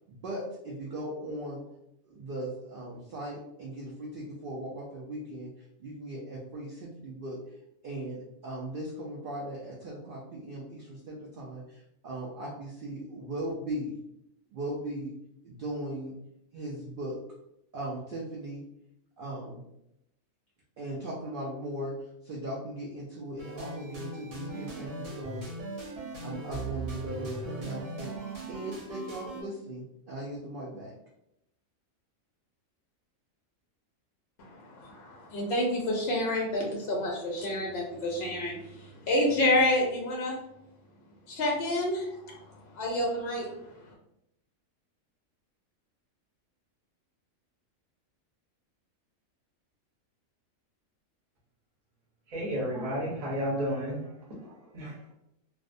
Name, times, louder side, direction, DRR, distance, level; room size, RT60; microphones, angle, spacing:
voice 1, 0.1-1.6 2.0-7.4 7.8-14.0 14.5-15.1 15.4-16.1 16.5-17.2 17.7-18.6 19.2-19.6 20.8-25.5 26.2-28.1 28.5-30.9, right 1 dB, 85° right, -3 dB, 0.4 m, -38 dB
sound 1, 23.4-29.4, right 2 dB, 65° right, 0.9 m, -39 dB
voice 2, 34.4-40.4 41.3-42.1 42.7-43.5, left 1 dB, 60° left, -2 dB, 0.7 m, -28 dB
voice 3, 52.3-54.1 54.4-55.1, equal, 35° right, -5 dB, 0.7 m, -32 dB
2.5 x 2.0 x 2.5 m, 0.80 s
omnidirectional pair, 1.5 m